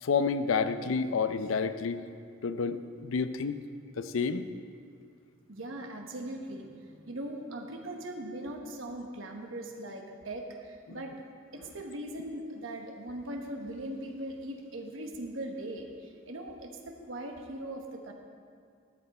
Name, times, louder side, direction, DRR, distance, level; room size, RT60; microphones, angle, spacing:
voice 1, 0.0-2.0 2.4-3.6 4.0-4.5, left 5 dB, 80° left, 11 dB, 0.5 m, -29 dB
voice 2, 5.5-11.1 11.5-18.1, right 1 dB, 75° right, 3 dB, 1.1 m, -40 dB
13.5 x 8.0 x 4.2 m, 2.3 s
head